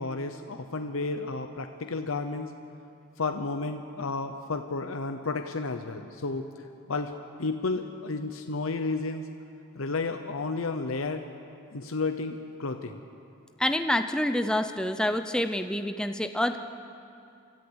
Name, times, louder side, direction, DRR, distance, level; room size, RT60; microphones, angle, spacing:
voice 1, 0.0-2.5 3.2-6.5 6.9-7.1 7.4-9.3 9.8-11.2 11.7-13.0, left 3 dB, 80° left, 6 dB, 0.8 m, -32 dB
voice 2, 13.6-16.6, left 1 dB, 5° left, 8 dB, 0.6 m, -27 dB
25.0 x 14.0 x 8.0 m, 2.6 s
head